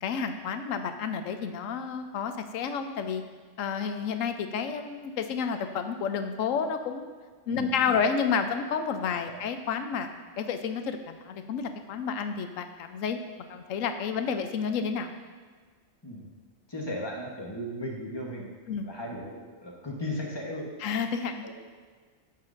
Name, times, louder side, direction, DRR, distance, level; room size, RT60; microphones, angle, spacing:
voice 1, 0.0-3.2 3.6-7.1 7.5-10.1 10.4-13.2 13.5-15.1 18.7-18.8 20.8-21.4, left 6 dB, 75° left, 8 dB, 1.0 m, -30 dB
voice 2, 7.5-8.0 16.0-16.3 16.7-18.5 18.8-20.7 21.4-21.5, left 1 dB, 20° left, -1 dB, 1.1 m, -36 dB
9.7 x 7.3 x 2.6 m, 1.5 s
omnidirectional pair, 1.4 m